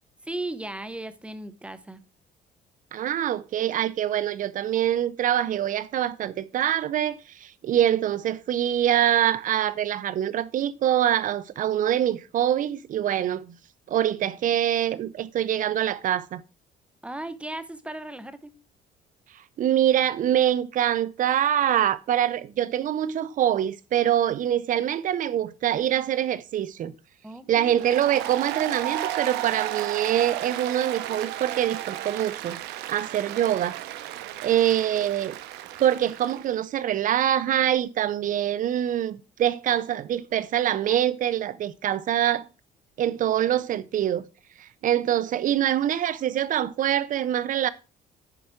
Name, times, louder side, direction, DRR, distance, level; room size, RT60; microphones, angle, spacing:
voice 1, 0.2-2.0 17.0-18.5 24.8-24.9 27.2-27.7, right 2 dB, 5° right, 0.8 m, -36 dB
voice 2, 2.9-13.6 13.9-16.4 19.6-26.9 27.5-32.6 32.9-33.8 34.4-35.4 35.8-42.5 43.0-44.2 44.6-47.7, right 11 dB, 50° right, 0.7 m, -24 dB
Applause, 27.7-36.5, right 14 dB, 90° right, 0.8 m, -34 dB
9.9 x 4.8 x 4.5 m
cardioid pair, 110°, 17 cm